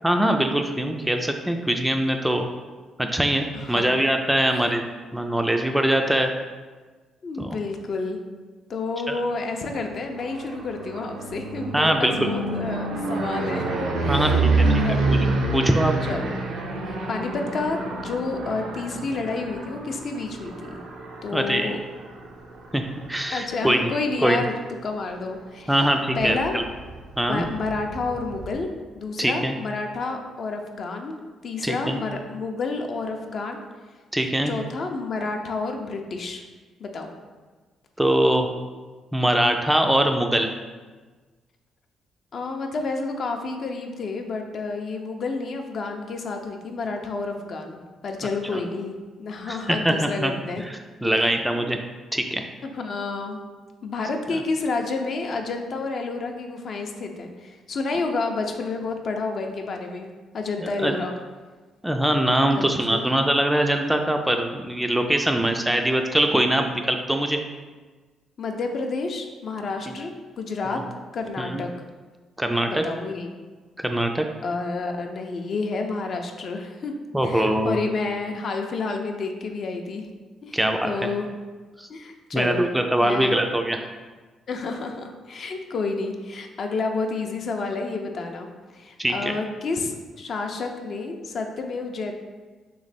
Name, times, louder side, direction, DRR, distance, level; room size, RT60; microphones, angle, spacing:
voice 1, 0.0-2.5 3.0-4.8 5.1-6.3 7.4-7.6 9.1-9.2 11.7-12.3 14.1-14.8 15.1-15.2 15.5-15.9 21.3-21.8 22.7-22.8 23.1-23.9 24.2-24.4 25.7-26.6 27.2-27.5 29.2-29.6 31.6-32.0 34.1-34.5 38.0-38.5 39.1-40.5 48.5-48.6 49.5-50.3 50.6-51.8 52.1-52.4 60.6-61.0 61.8-67.4 70.7-70.8 71.4-71.6 72.4-72.8 73.8-74.3 77.1-77.8 80.5-80.9 81.8-81.9 82.3-83.8 89.0-89.3, right 1 dB, 5° right, 4 dB, 0.3 m, -22 dB
voice 2, 3.5-4.0 4.4-4.6 7.2-8.2 8.7-13.6 14.0-15.0 16.1-16.3 16.9-20.8 21.2-21.8 23.3-24.5 24.8-25.9 26.2-26.6 27.3-28.7 28.9-31.2 31.4-33.6 34.5-36.4 36.8-37.1 42.3-50.6 51.0-51.6 52.6-53.4 53.8-60.1 60.3-61.1 62.6-63.0 68.4-70.8 71.1-71.7 72.7-73.3 74.4-76.9 77.2-80.1 80.4-81.3 81.9-82.7 83.0-83.4 84.5-92.2, left 3 dB, 55° left, 4 dB, 0.5 m, -30 dB
sound 1, 9.9-23.9 24.4-24.8 25.1-25.2 25.5-25.6 25.7-28.5, right 3 dB, 85° right, 0.5 m, -28 dB
3.1 x 2.9 x 4.1 m, 1.3 s
cardioid pair, 90°, 0 cm